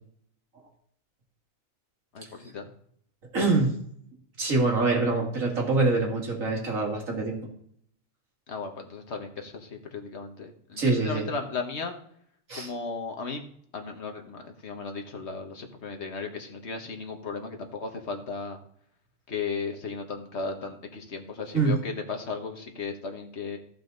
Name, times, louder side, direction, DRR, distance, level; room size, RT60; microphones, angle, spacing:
voice 1, 2.1-2.7 8.5-11.9 12.5-13.5 13.7-18.6 19.3-23.6, left 4 dB, 55° left, 4 dB, 1.5 m, -35 dB
voice 2, 3.3-3.7 4.4-7.5 10.8-11.3 12.5-12.7 21.5-21.8, right 3 dB, 75° right, 0 dB, 2.5 m, -25 dB
14.0 x 5.6 x 3.9 m, 0.65 s
omnidirectional pair, 1.4 m